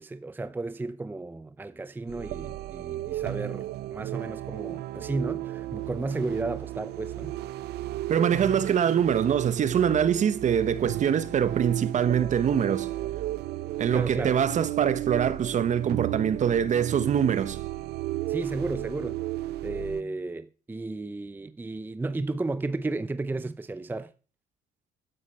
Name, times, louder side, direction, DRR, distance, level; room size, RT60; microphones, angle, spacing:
voice 1, 0.0-7.4 13.9-14.4 18.3-19.2 19.6-24.1, right 2 dB, 10° right, 0.6 m, -33 dB
sound 1, 2.1-20.0, right 15 dB, 75° right, 0.7 m, -34 dB
voice 2, 8.1-12.9 13.8-17.6, right 8 dB, 45° right, 1.1 m, -24 dB
12.0 x 9.6 x 5.7 m
cardioid pair, 110°, 17 cm